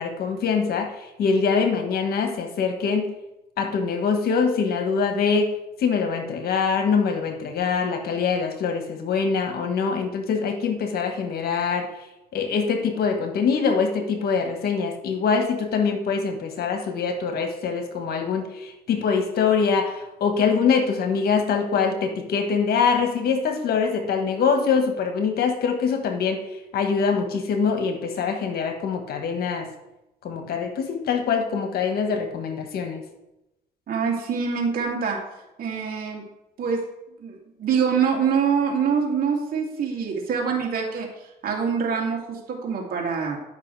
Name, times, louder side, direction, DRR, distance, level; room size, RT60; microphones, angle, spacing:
voice 1, 0.0-3.1 3.6-5.5 5.8-11.9 12.3-26.5 26.7-29.7 30.2-33.0, left 5 dB, 75° left, 6 dB, 1.5 m, -24 dB
voice 2, 33.9-35.2 35.6-36.2 36.6-36.8 37.2-41.1 41.4-43.4, right 6 dB, 65° right, -1 dB, 2.6 m, -25 dB
10.5 x 5.9 x 4.8 m, 0.90 s
cardioid pair, 80°, 16 cm